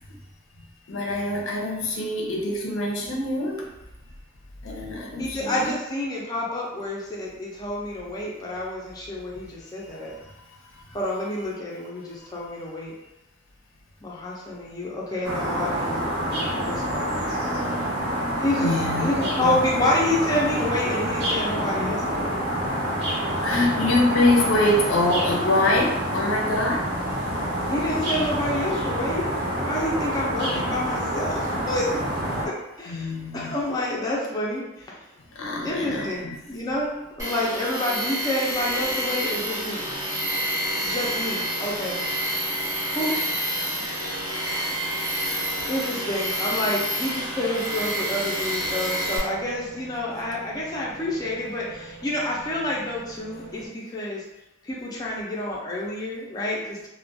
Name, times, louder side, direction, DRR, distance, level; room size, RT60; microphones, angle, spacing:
voice 1, 0.9-3.7 4.6-5.8 10.1-10.3 10.7-10.9 18.6-19.6 22.7-22.8 23.4-26.9 32.9-33.6 35.3-36.4, left 2 dB, 85° left, -1 dB, 0.5 m, -25 dB
voice 2, 5.2-10.2 10.9-12.9 14.0-17.3 18.4-22.3 27.6-31.9 32.4-35.1 35.6-39.9 40.8-42.0 42.9-43.2 43.8-43.9 45.7-54.2 54.6-56.9, left 1 dB, 20° left, -4 dB, 0.4 m, -29 dB
sound 1, 15.2-32.5, equal, 55° right, 0.6 m, -27 dB
sound 2, 35.6-53.7, right 2 dB, 85° right, 1.0 m, -45 dB
Tools, 37.2-49.2, right 1 dB, 15° right, 0.7 m, -28 dB
2.3 x 2.1 x 2.5 m, 0.93 s
head